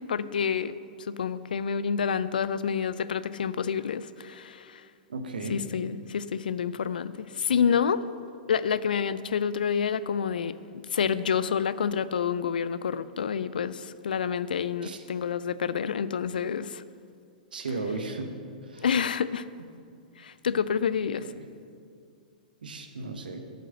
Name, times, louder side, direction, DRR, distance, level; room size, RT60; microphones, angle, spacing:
voice 1, 0.1-4.9 5.5-8.0 8.5-16.8 18.8-19.5 20.2-21.3, left 7 dB, 75° left, 16 dB, 0.4 m, -28 dB
voice 2, 5.1-5.6 14.8-15.0 17.5-18.3 18.6-18.8 22.6-23.4, right 3 dB, 80° right, 6 dB, 1.0 m, -35 dB
7.7 x 5.5 x 7.4 m, 2.3 s
hypercardioid pair, 110°, 5 cm